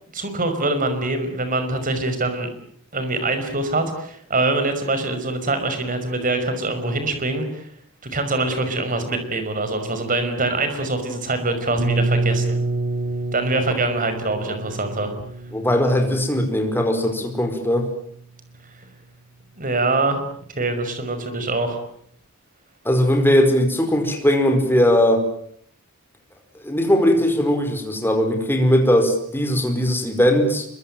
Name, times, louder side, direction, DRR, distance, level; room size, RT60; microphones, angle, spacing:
voice 1, 0.1-2.5 2.9-7.7 8.0-12.6 13.3-15.1 19.6-20.2 20.6-21.8, right 2 dB, 40° right, 8 dB, 5.6 m, -24 dB
sound 1, 11.8-17.5, right 2 dB, 55° right, 3.9 m, -27 dB
voice 2, 15.5-17.9 22.8-25.2 26.6-30.7, equal, 10° left, 5 dB, 5.0 m, -19 dB
26.0 x 23.5 x 9.1 m, 0.66 s
head